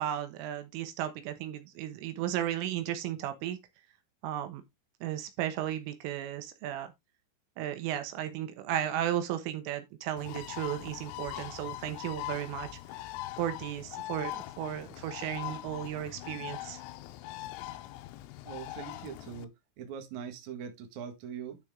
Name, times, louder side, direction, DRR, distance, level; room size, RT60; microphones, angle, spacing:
voice 1, 0.0-3.6 4.2-4.6 5.0-6.9 7.6-12.7 13.4-16.8, right 11 dB, 80° right, 3.7 m, -34 dB
Bird, 10.2-19.4, left 15 dB, 80° left, 3.2 m, -41 dB
voice 2, 18.4-19.5 19.8-21.6, right 8 dB, 55° right, 2.3 m, -42 dB
12.5 x 4.7 x 3.7 m
omnidirectional pair, 5.9 m